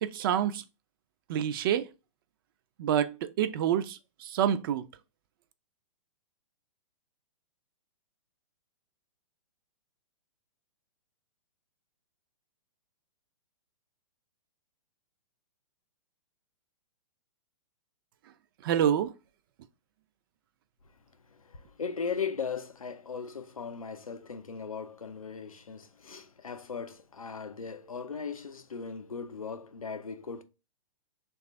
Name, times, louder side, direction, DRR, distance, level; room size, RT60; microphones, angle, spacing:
voice 1, 0.0-0.6 1.3-1.9 2.8-4.9 18.6-19.1, right 10 dB, 40° right, 0.4 m, -27 dB
voice 2, 21.3-30.4, left 5 dB, 90° left, 0.4 m, -38 dB
3.2 x 2.3 x 3.7 m
figure-of-eight pair, 115°, 17 cm